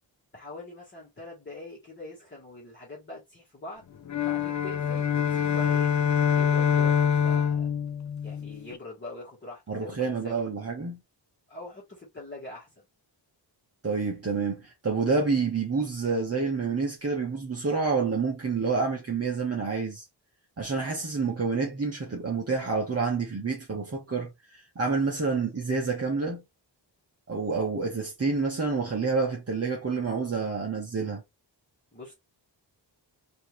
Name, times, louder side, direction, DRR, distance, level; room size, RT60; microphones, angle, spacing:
voice 1, 0.3-3.8 4.2-5.9 6.3-7.7 8.2-10.4 11.5-12.8 31.9-32.1, left 2 dB, 25° left, 1.4 m, -43 dB
sound 1, 4.1-8.8, left 8 dB, 40° left, 0.5 m, -25 dB
voice 2, 9.7-11.0 13.8-20.1 20.6-26.4 27.3-31.2, right 4 dB, 35° right, 0.9 m, -28 dB
4.4 x 2.8 x 3.1 m
wide cardioid pair, 175°, 44 cm